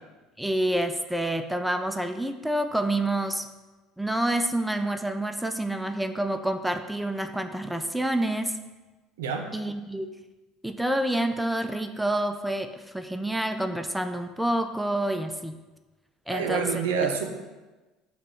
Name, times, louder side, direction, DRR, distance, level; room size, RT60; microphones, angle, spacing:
voice 1, 0.4-3.5 4.0-8.6 9.5-10.1 10.6-15.6 16.3-16.7, right 1 dB, 5° right, 8 dB, 0.3 m, -28 dB
voice 2, 9.2-9.5 16.3-17.3, right 6 dB, 85° right, 5 dB, 0.4 m, -27 dB
4.7 x 2.3 x 4.4 m, 1.2 s
hypercardioid pair, 75°, 0 cm